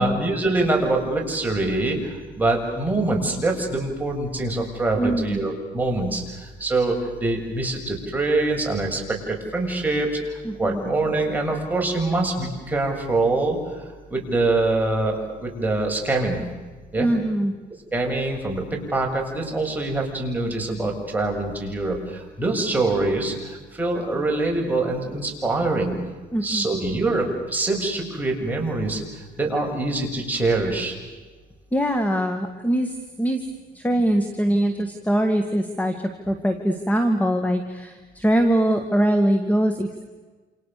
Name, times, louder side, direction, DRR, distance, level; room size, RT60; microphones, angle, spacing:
voice 1, 0.0-6.9 7.2-13.6 14.1-16.4 16.9-17.1 17.9-26.0 26.4-29.0 29.4-31.0, right 2 dB, 10° right, 0 dB, 7.2 m, -24 dB
voice 2, 5.0-5.5 10.4-10.8 17.0-17.5 22.4-22.8 26.3-26.7 31.7-33.5 33.7-40.0, right 1 dB, 10° left, 7 dB, 2.2 m, -23 dB
29.0 x 28.0 x 6.9 m, 1.3 s
cardioid pair, 110°, 17 cm